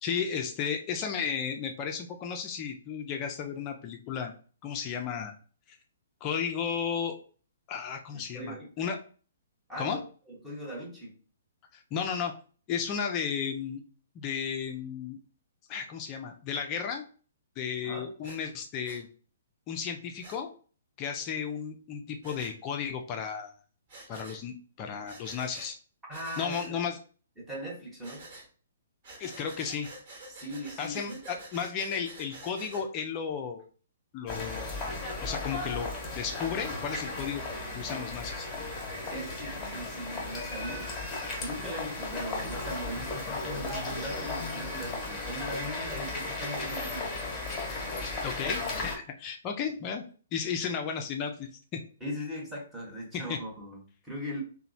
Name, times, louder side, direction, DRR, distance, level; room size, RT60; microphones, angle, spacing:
voice 1, 0.0-4.4 4.6-5.3 5.7-5.8 6.2-7.2 7.7-9.0 9.8-10.0 11.7-12.3 12.7-13.8 14.2-15.2 15.7-17.0 17.6-19.1 19.7-20.5 21.0-23.5 24.1-25.8 26.4-27.0 29.2-29.9 30.8-33.6 34.1-34.8 35.2-35.9 36.2-37.4 37.7-38.5 48.2-50.0 50.3-51.8 53.1-53.4, left 7 dB, 30° left, 4 dB, 0.4 m, -34 dB
voice 2, 8.1-8.9 9.7-10.0 10.3-11.1 17.8-18.1 26.1-26.8 27.4-28.3 30.3-31.4 32.7-32.8 37.9-38.0 39.0-40.9 41.4-47.1 52.0-54.4, equal, 10° right, -3 dB, 1.0 m, -39 dB
Breathing, 18.2-18.4 18.8-19.0 20.2-20.4 22.2-22.5 23.9-24.4 25.1-25.7 26.1-26.7 28.0-28.5 29.0-32.8, right 2 dB, 45° right, 1.2 m, -48 dB
sound 1, 34.3-49.0, left 2 dB, 15° left, 1.1 m, -35 dB
2.9 x 2.1 x 2.6 m, 0.40 s
figure-of-eight pair, 125°, 0 cm